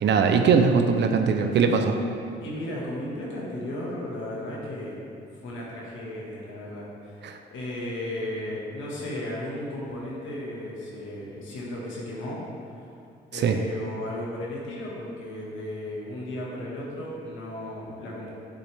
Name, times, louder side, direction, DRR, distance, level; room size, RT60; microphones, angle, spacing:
voice 1, 0.0-2.0 7.2-7.4 13.3-13.6, right 5 dB, 60° right, 5 dB, 0.6 m, -21 dB
voice 2, 2.4-5.0 5.3-12.4 12.8-12.9 13.3-18.3, left 1 dB, 80° left, -5 dB, 1.6 m, -35 dB
7.7 x 7.0 x 3.4 m, 2.5 s
cardioid pair, 90°, 20 cm